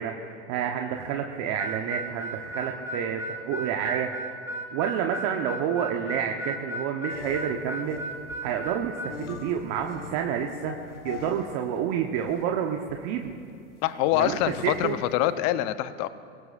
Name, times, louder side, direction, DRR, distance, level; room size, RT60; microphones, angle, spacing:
voice 1, 0.0-8.0 8.4-13.3 14.1-14.4 14.6-15.0, right 8 dB, 55° right, 3 dB, 1.1 m, -29 dB
Harmonica, 1.6-9.2, right 1 dB, 10° right, 2.1 m, -35 dB
sound 1, 7.1-11.5 11.8-15.2, left 5 dB, 85° left, 1.6 m, -42 dB
voice 2, 13.8-16.1, left 14 dB, 50° left, 13 dB, 0.8 m, -25 dB
23.0 x 17.5 x 2.6 m, 2.6 s
hypercardioid pair, 100°, 35 cm